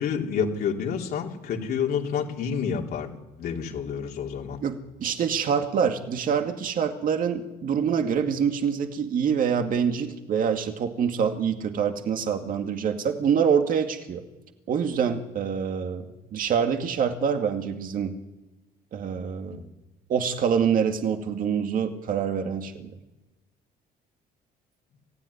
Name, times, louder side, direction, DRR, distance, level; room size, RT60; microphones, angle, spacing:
voice 1, 0.0-4.6 19.5-19.6, left 7 dB, 65° left, 0 dB, 3.5 m, -29 dB
voice 2, 4.6-14.2 14.7-16.1 16.3-18.2 18.9-19.6 20.1-22.9, right 7 dB, 55° right, 5 dB, 2.2 m, -25 dB
28.0 x 16.0 x 9.8 m, 1.1 s
cardioid pair, 110°, 17 cm